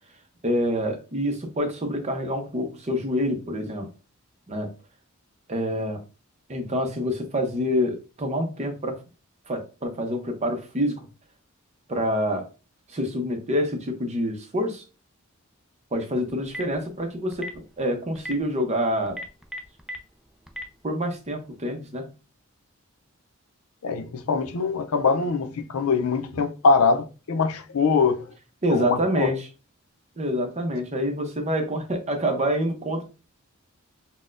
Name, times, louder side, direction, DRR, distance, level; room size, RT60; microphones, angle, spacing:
voice 1, 0.4-3.9 4.5-4.7 5.5-6.0 6.5-9.0 9.5-11.0 11.9-12.5 12.9-14.8 15.9-17.5 17.8-19.2 20.8-22.1 28.6-29.5 30.2-33.0, equal, 30° right, 0.7 m, -26 dB
Telephone, 16.3-16.8 17.3-17.6 18.1-18.3 19.1-20.0 20.5-20.6, left 1 dB, 5° right, 0.3 m, -34 dB
voice 2, 23.8-28.3 28.7-29.3, left 4 dB, 85° left, 0.5 m, -23 dB
4.0 x 2.1 x 2.5 m
head